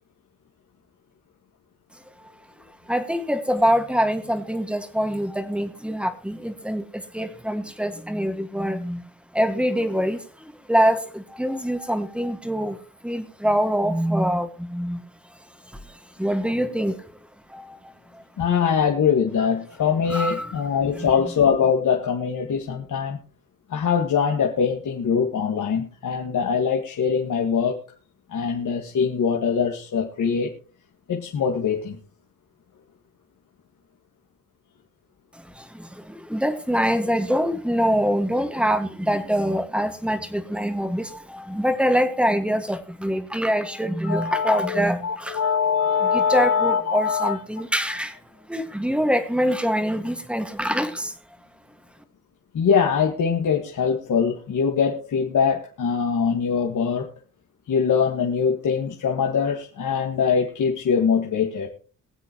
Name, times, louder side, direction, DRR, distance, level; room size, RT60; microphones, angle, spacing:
voice 1, 2.9-9.0 9.3-12.8 13.0-15.0 15.9-17.2 17.5-17.8 18.1-18.2 20.1-20.5 21.0-21.1 35.6-45.4 46.1-48.2 48.5-51.1, equal, 5° right, 8 dB, 1.8 m, -24 dB
voice 2, 18.4-23.2 23.7-27.8 28.3-30.5 31.1-32.0 44.0-47.4 47.9-48.0 52.5-57.1 57.7-61.7, left 6 dB, 65° left, 1 dB, 1.9 m, -23 dB
23.0 x 7.9 x 3.1 m, 0.39 s
cardioid pair, 85°, 33 cm